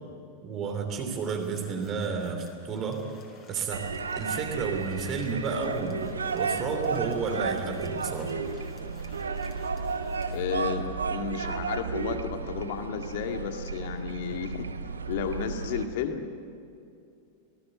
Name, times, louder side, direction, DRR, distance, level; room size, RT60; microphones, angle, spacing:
voice 1, 0.4-3.0 3.5-3.9 4.1-6.0 6.3-8.3, right 5 dB, 30° right, 4 dB, 3.1 m, -31 dB
sound 1, 1.2-10.5, left 4 dB, 30° left, 5.0 m, -54 dB
sound 2, 3.7-15.9, right 4 dB, 75° right, 1.1 m, -33 dB
voice 2, 10.3-14.7 15.1-16.3, left 7 dB, 50° left, 5 dB, 2.0 m, -32 dB
25.5 x 18.5 x 8.0 m, 2.5 s
figure-of-eight pair, 90°, 0 cm